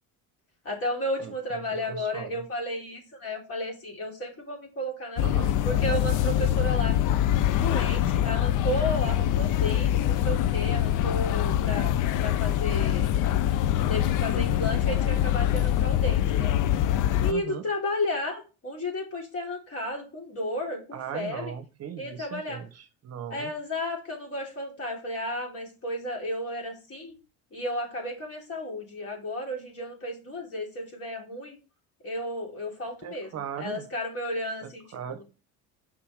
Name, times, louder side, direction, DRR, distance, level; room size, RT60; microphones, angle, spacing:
voice 1, 0.6-5.2 5.6-7.0 7.5-11.9 12.2-13.1 13.9-16.5 17.2-21.5 22.0-22.6 23.3-27.1 27.5-31.6 32.0-35.2, left 1 dB, 35° left, 0 dB, 3.3 m, -33 dB
voice 2, 1.2-1.6 1.9-2.4 5.2-5.5 17.3-17.6 20.9-23.5 33.0-33.8 34.6-35.2, right 9 dB, 40° right, 10 dB, 0.9 m, -38 dB
sound 1, 5.2-17.3, left 11 dB, 55° left, 0.5 m, -24 dB
6.8 x 5.3 x 4.9 m, 0.33 s
cardioid pair, 115°, 38 cm